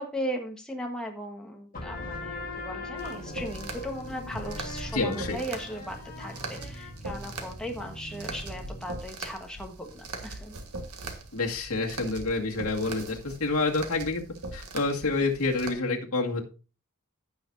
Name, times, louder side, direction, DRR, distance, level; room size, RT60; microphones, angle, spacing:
voice 1, 0.0-10.6, equal, 5° left, 1 dB, 1.4 m, -37 dB
sound 1, 1.7-9.0, left 2 dB, 40° left, 3.4 m, -40 dB
sound 2, 3.0-15.7, right 3 dB, 80° right, 1.6 m, -41 dB
voice 2, 4.9-5.4 11.3-14.2 14.5-16.4, left 3 dB, 70° left, 1 dB, 2.0 m, -28 dB
15.5 x 6.0 x 2.7 m, 0.33 s
head